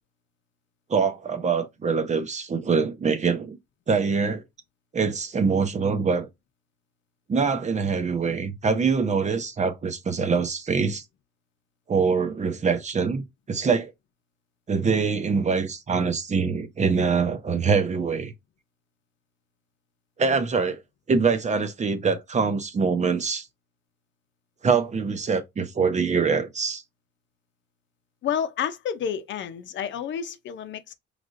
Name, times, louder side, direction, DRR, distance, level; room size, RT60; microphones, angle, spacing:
voice 1, 0.9-3.6 3.9-4.4 4.9-6.3 7.3-11.0 11.9-13.9 14.7-18.3 20.2-20.8 21.1-23.5 24.6-26.8, right 5 dB, 35° right, 0.8 m, -24 dB
voice 2, 28.2-30.9, left 8 dB, 70° left, 0.7 m, -30 dB
5.1 x 3.2 x 2.6 m
cardioid pair, 90°, 20 cm